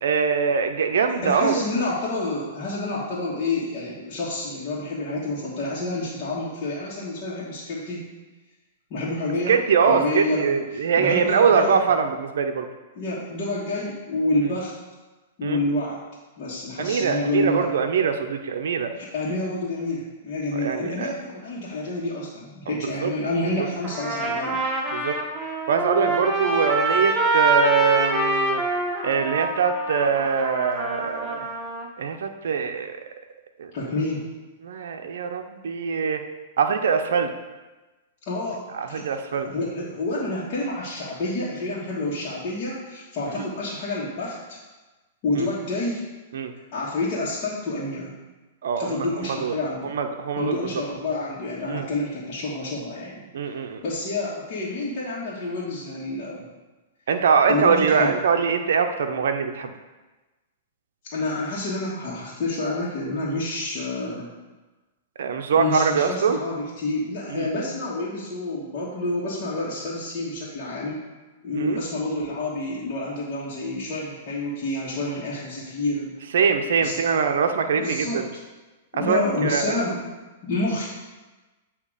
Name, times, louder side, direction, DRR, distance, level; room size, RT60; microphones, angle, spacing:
voice 1, 0.0-1.6 9.5-12.7 15.4-15.6 16.8-18.9 20.5-21.1 22.7-23.1 24.9-25.2 25.7-28.6 29.0-31.5 32.0-33.0 33.6-33.7 34.6-36.2 36.6-37.3 38.7-39.5 43.4-43.5 45.3-45.5 46.3-46.5 48.6-49.5 49.8-50.6 51.7-51.9 53.3-53.8 57.1-59.7 65.2-66.4 67.3-67.5 71.5-71.8 76.3-78.3 78.9-79.7, right 6 dB, 75° right, 5 dB, 0.6 m, -23 dB
voice 2, 1.2-8.0 8.9-9.6 9.9-11.8 12.9-14.7 15.4-16.0 16.4-17.7 19.0-24.6 33.7-34.2 38.3-44.6 45.2-46.1 46.7-48.1 48.8-49.9 50.3-53.3 53.8-56.4 57.5-58.1 61.1-64.3 65.5-71.0 71.4-76.1 76.8-77.2 77.8-78.2 78.9-80.0 80.4-80.9, left 2 dB, 45° left, -8 dB, 1.5 m, -28 dB
Trumpet, 23.8-31.9, right 2 dB, 15° right, 1.1 m, -25 dB
8.4 x 2.9 x 4.9 m, 1.2 s
hypercardioid pair, 120°, 0 cm